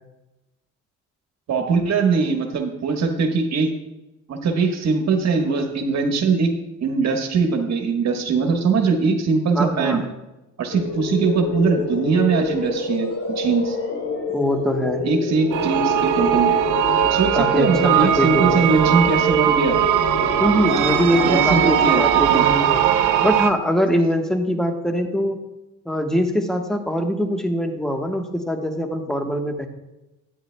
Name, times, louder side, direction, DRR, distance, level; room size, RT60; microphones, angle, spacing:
voice 1, 1.5-3.7 4.3-6.5 6.8-10.0 10.6-13.8 15.0-16.5 17.1-19.8 21.2-22.0 22.3-22.5, right 4 dB, 60° right, 3 dB, 1.3 m, -21 dB
voice 2, 9.5-10.0 14.3-15.0 17.3-18.7 20.4-22.8 23.2-25.4 25.8-29.7, equal, ahead, 4 dB, 1.2 m, -22 dB
sound 1, 10.7-23.5, left 3 dB, 55° left, 2.4 m, -28 dB
sound 2, 15.5-23.5, right 11 dB, 80° right, 0.6 m, -20 dB
12.0 x 9.1 x 2.2 m, 0.98 s
cardioid pair, 90°, 30 cm